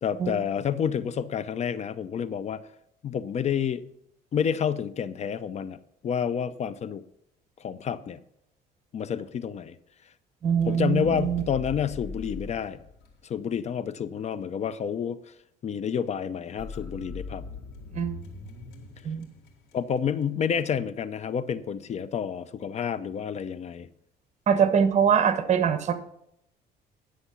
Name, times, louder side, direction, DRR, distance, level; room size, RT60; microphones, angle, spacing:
voice 1, 0.0-2.6 3.0-3.8 4.3-5.8 6.0-7.0 7.6-8.2 8.9-9.7 10.7-12.8 13.2-15.2 15.6-17.4 19.7-23.9, left 7 dB, 40° left, 16 dB, 0.5 m, -29 dB
voice 2, 10.4-11.4 18.0-18.1 19.0-19.2 24.5-25.9, right 7 dB, 45° right, 10 dB, 1.1 m, -23 dB
pause resume sound fx, 10.6-13.6 16.6-20.0, left 4 dB, 85° left, 1.7 m, -41 dB
9.9 x 6.4 x 5.7 m, 0.75 s
cardioid pair, 110°, 17 cm